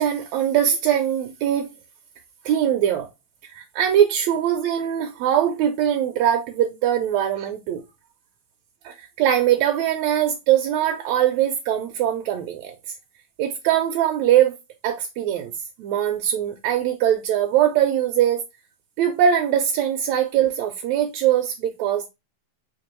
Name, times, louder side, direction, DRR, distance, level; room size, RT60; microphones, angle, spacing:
voice 1, 0.0-1.7 2.5-3.1 3.5-7.8 8.8-12.7 13.4-14.6 14.8-15.5 15.8-18.4 19.0-22.1, right 10 dB, 80° right, 1.8 m, -21 dB
5.1 x 2.9 x 2.9 m
omnidirectional pair, 3.3 m